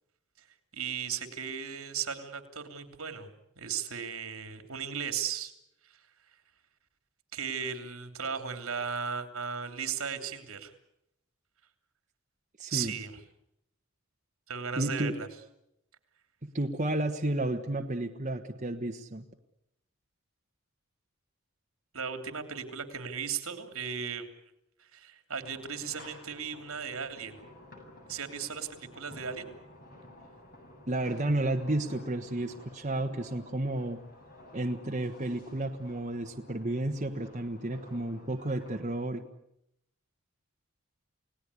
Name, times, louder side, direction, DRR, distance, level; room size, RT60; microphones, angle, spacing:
voice 1, 0.7-3.3 3.6-5.5 7.3-10.7 12.7-13.1 14.5-15.3 21.9-24.3 24.8-27.4 28.1-29.6, right 7 dB, 75° right, 8 dB, 3.0 m, -36 dB
voice 2, 12.6-12.9 14.8-15.1 16.4-19.2 30.9-34.0 34.5-39.2, right 1 dB, 35° right, 3 dB, 1.4 m, -32 dB
sound 1, 25.4-38.8, left 1 dB, 40° left, 7.7 m, -52 dB
29.5 x 18.0 x 9.8 m, 0.82 s
head